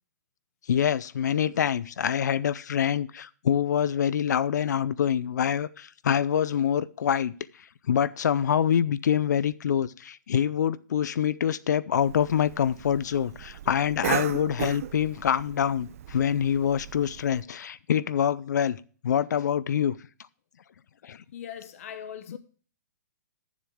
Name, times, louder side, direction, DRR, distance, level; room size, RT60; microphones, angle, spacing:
voice 1, 0.7-7.3 7.9-20.0 21.0-21.2 22.3-22.4, left 9 dB, 75° left, 0.5 m, -25 dB
Cough, 12.0-17.4, right 11 dB, 50° right, 0.4 m, -37 dB
voice 2, 21.3-22.4, left 9 dB, 50° left, 0.8 m, -40 dB
11.5 x 7.3 x 3.5 m
hypercardioid pair, 160°, 9 cm